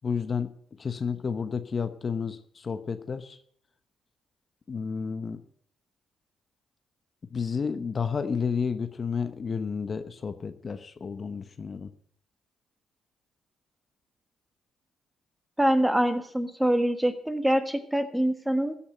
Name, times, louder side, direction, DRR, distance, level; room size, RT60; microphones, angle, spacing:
voice 1, 0.0-0.5 0.8-3.4 4.7-5.4 7.3-11.9, left 6 dB, 45° left, 10 dB, 1.0 m, -31 dB
voice 2, 15.6-18.8, right 1 dB, 5° right, 9 dB, 1.5 m, -25 dB
15.0 x 5.7 x 7.9 m, 0.63 s
supercardioid pair, 55°, 0 cm